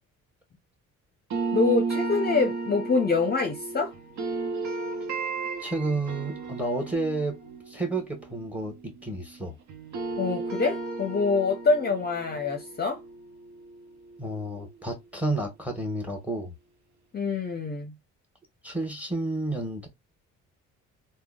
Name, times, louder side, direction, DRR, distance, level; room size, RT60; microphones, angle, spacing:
sound 1, 1.3-9.4 9.7-14.6, right 4 dB, 65° right, 0.8 m, -34 dB
voice 1, 1.5-3.9 10.2-13.0 17.1-17.9, left 4 dB, 30° left, 0.7 m, -25 dB
voice 2, 5.6-7.4 7.7-9.6 14.2-16.5 18.6-19.9, right 2 dB, 5° right, 1.2 m, -31 dB
3.5 x 2.2 x 2.3 m
cardioid pair, 90°, 30 cm